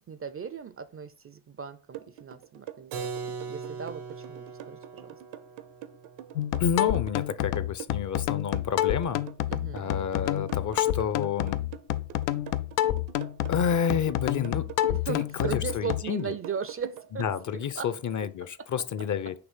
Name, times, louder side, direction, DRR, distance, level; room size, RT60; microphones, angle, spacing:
voice 1, 0.1-5.2 9.5-9.9 14.9-17.3 17.5-17.9 18.4-18.7 19.0-19.1, right 6 dB, 30° right, 0.5 m, -38 dB
sound 1, 1.9-17.3, right 11 dB, 65° right, 0.8 m, -44 dB
Keyboard (musical), 2.9-8.5, right 5 dB, 90° right, 1.3 m, -41 dB
sound 2, 6.4-16.0, left 13 dB, 85° left, 0.6 m, -29 dB
voice 2, 6.6-9.2 9.7-11.6 13.5-14.7 15.1-16.3 17.2-19.3, left 7 dB, 40° left, 0.6 m, -29 dB
5.9 x 3.1 x 5.5 m
hypercardioid pair, 60°, 49 cm